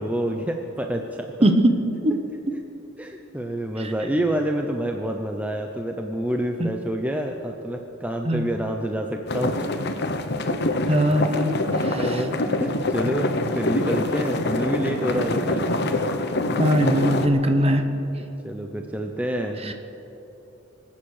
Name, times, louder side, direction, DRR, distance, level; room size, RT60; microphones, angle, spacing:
voice 1, 0.0-1.3 3.0-9.7 10.5-10.6 10.9-11.0 11.4-11.7 11.9-15.7 18.4-19.7, right 1 dB, 5° right, 3 dB, 0.7 m, -28 dB
voice 2, 1.4-1.7 2.0-2.2 3.8-3.9 6.6-6.7 8.2-8.4 10.9-11.5 11.9-12.2 16.6-17.8 19.6-19.7, equal, 30° right, 6 dB, 1.1 m, -20 dB
sound 1, 9.3-17.3, left 2 dB, 55° left, 1.0 m, -25 dB
24.5 x 8.9 x 6.5 m, 3.0 s
head